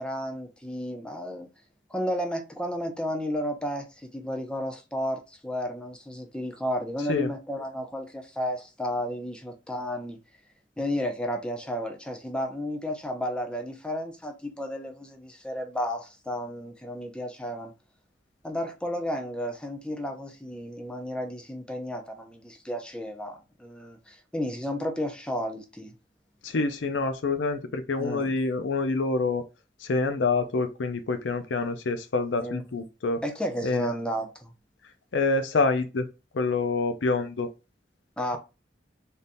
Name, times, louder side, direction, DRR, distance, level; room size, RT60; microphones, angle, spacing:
voice 1, 0.0-1.5 1.9-3.8 4.1-10.2 10.8-17.7 18.4-25.9 28.0-28.3 32.4-32.6 33.2-34.5 38.2-38.4, equal, 5° left, 0.6 m, -32 dB
voice 2, 26.4-29.4 29.8-33.2 33.6-33.9 35.1-36.1 36.3-37.5, left 3 dB, 75° left, 0.5 m, -26 dB
3.5 x 2.7 x 2.6 m
head